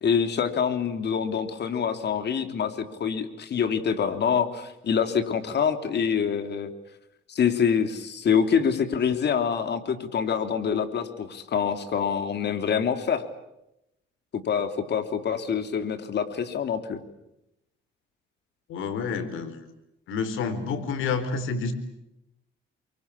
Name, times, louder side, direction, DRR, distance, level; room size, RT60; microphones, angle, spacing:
voice 1, 0.0-6.7 7.3-13.2 14.3-17.0, left 7 dB, 60° left, 9 dB, 3.3 m, -26 dB
voice 2, 18.7-19.6 20.1-21.7, left 5 dB, 90° left, 11 dB, 4.2 m, -29 dB
28.5 x 24.0 x 8.6 m, 0.87 s
cardioid pair, 90°, 20 cm